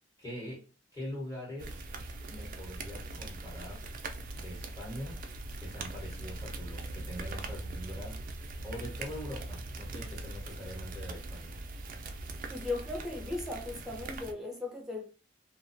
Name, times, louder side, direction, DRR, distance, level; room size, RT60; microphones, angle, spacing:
voice 1, 0.2-0.6 0.9-1.8 2.3-3.8 4.3-5.2 5.6-8.2 8.6-11.6, equal, 20° left, 1.0 m, -43 dB
sound 1, 1.6-14.3, right 2 dB, 45° right, 0.3 m, -41 dB
voice 2, 12.5-15.0, left 2 dB, 5° right, 0.6 m, -37 dB
2.4 x 2.1 x 2.5 m
head